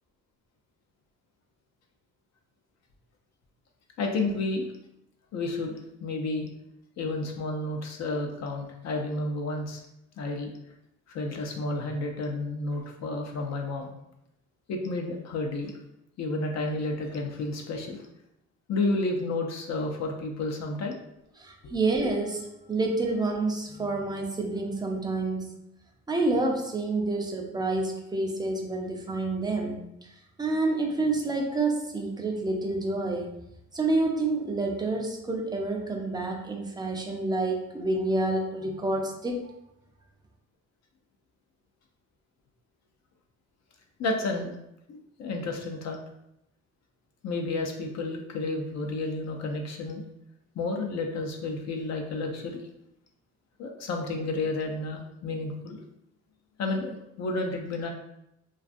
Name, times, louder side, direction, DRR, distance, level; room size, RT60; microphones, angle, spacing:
voice 1, 4.0-4.7 5.3-6.5 7.0-9.8 10.2-10.5 11.1-13.9 14.7-15.8 16.2-18.0 18.7-21.0 21.6-21.7 44.0-44.6 44.9-46.0 47.2-50.0 50.5-52.6 53.6-55.8 56.6-57.9, left 2 dB, 60° left, 2 dB, 0.6 m, -31 dB
voice 2, 21.4-25.5 26.1-29.8 30.4-33.3 33.7-39.4, right 2 dB, 15° right, 2 dB, 0.4 m, -28 dB
2.4 x 2.4 x 2.5 m, 0.82 s
cardioid pair, 90°, 30 cm